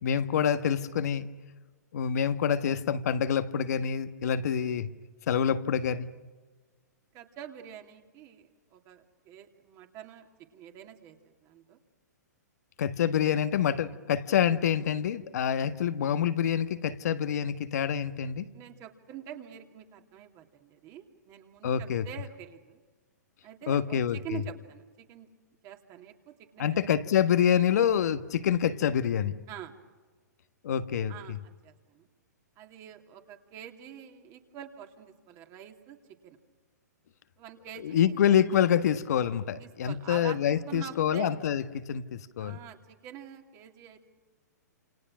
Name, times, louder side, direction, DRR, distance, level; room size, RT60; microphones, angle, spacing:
voice 1, 0.0-1.3 1.9-4.9 5.3-6.1 12.8-18.5 21.6-22.0 23.7-24.4 26.6-29.3 30.6-31.1 37.8-42.6, left 8 dB, 65° left, 11 dB, 1.5 m, -26 dB
voice 2, 7.1-11.8 18.5-22.8 23.4-25.3 25.6-26.8 29.5-29.7 31.1-32.1 32.6-36.0 36.2-36.4 37.4-38.2 39.6-41.3 42.4-44.0, right 10 dB, 35° right, 4 dB, 2.9 m, -46 dB
28.5 x 28.0 x 6.3 m, 1.4 s
hypercardioid pair, 125°, 9 cm